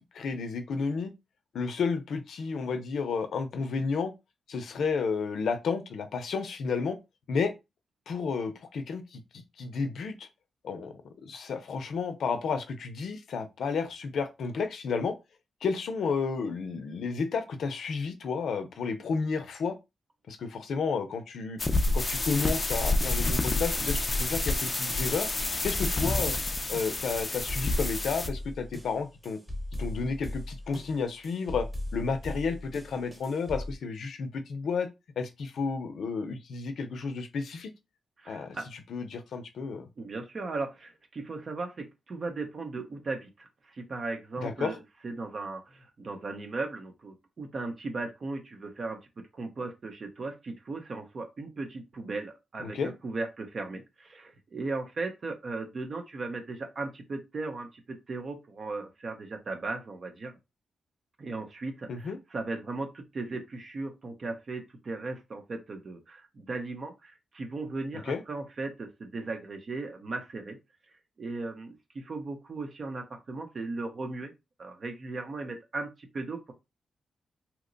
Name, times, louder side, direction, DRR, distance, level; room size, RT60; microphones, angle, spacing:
voice 1, 0.1-1.1 1.5-4.1 4.5-7.0 7.3-7.5 8.1-10.3 10.6-10.9 11.2-15.2 15.6-19.8 20.3-21.6 21.9-25.3 25.6-26.3 26.7-29.4 29.8-34.9 35.2-37.7 38.3-38.6 38.9-39.9 44.4-44.8 52.6-52.9 61.9-62.2 68.1-68.2, left 5 dB, 75° left, 0.6 m, -32 dB
sound 1, 21.6-28.3, left 2 dB, 25° left, 0.4 m, -28 dB
sound 2, 25.7-33.7, left 1 dB, 10° right, 1.0 m, -38 dB
voice 2, 38.2-38.7 40.0-60.4 61.2-70.6 71.2-74.3 74.6-76.5, right 3 dB, 45° right, 0.7 m, -37 dB
2.9 x 2.2 x 3.8 m
wide cardioid pair, 130°, 0 cm